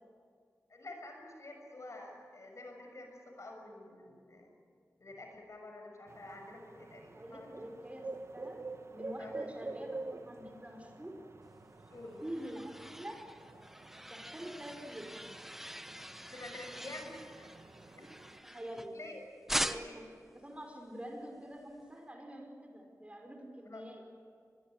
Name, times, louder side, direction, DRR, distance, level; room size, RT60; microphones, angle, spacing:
voice 1, 0.7-4.5 5.0-7.5 9.2-9.4 11.9-12.2 16.3-17.5 18.0-18.1 18.9-19.2 19.6-20.0 23.7-23.8, left 2 dB, 55° left, 2 dB, 6.8 m, -48 dB
sound 1, 6.1-18.4, right 3 dB, 50° right, 1.5 m, -48 dB
voice 2, 7.1-8.6 8.9-11.2 12.2-13.2 14.1-15.2 18.4-19.0 19.5-24.0, equal, 20° right, 2 dB, 5.2 m, -46 dB
sound 2, 11.8-19.1 19.5-20.1, equal, 5° right, 1.0 m, -42 dB
23.5 x 22.0 x 9.4 m, 2.1 s
wide cardioid pair, 65°, 6 cm